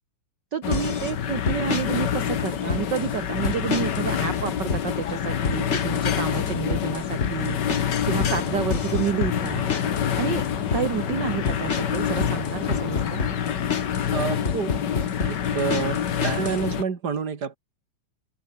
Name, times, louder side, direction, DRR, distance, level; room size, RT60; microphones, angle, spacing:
voice 1, 0.5-7.6 8.1-9.7 10.2-10.4 10.7-13.2, right 8 dB, 75° right, 1.0 m, -29 dB
sound 1, 0.6-16.8, left 8 dB, 55° left, 1.2 m, -27 dB
sound 2, 0.7-1.1 1.5-1.9 2.5-3.1 3.4-4.1 4.3-4.9 5.4-6.1 6.3-10.1 10.4-10.9 11.5-14.1 14.4-16.6, left 4 dB, 25° left, 1.7 m, -29 dB
sound 3, 8.0-13.4, left 6 dB, 90° left, 5.4 m, -36 dB
voice 2, 14.1-14.8 15.2-17.6, right 6 dB, 35° right, 2.4 m, -28 dB
omnidirectional pair, 3.6 m